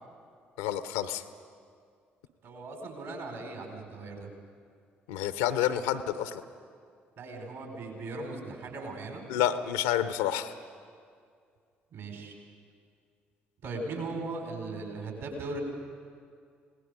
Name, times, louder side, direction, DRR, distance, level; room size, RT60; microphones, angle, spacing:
voice 1, 0.6-1.2 5.1-6.4 9.3-10.6, left 11 dB, 70° left, 13 dB, 0.8 m, -29 dB
voice 2, 2.4-4.3 7.2-9.2 11.9-12.3 13.6-15.6, right 3 dB, 60° right, 2 dB, 4.7 m, -38 dB
29.0 x 18.5 x 5.1 m, 2.2 s
figure-of-eight pair, 45°, 6 cm